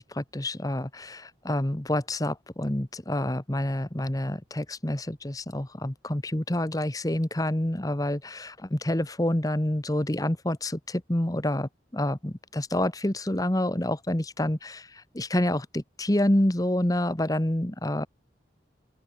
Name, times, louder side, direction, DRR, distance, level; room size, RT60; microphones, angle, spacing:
voice 1, 0.0-18.1, left 1 dB, 20° left, 1.2 m, -28 dB
open air
head